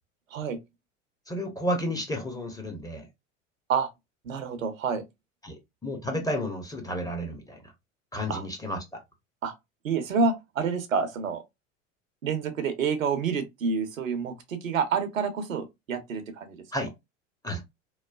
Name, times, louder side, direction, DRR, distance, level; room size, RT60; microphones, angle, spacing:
voice 1, 1.3-3.1 5.4-7.6 8.1-9.0 16.7-16.9 17.4-17.6, equal, 10° left, 0.8 m, -32 dB
voice 2, 4.2-5.0 8.3-8.4 9.4-9.5 9.8-11.4 12.2-16.6, right 5 dB, 85° right, 0.7 m, -28 dB
3.0 x 2.1 x 2.3 m
hypercardioid pair, 80°, 39 cm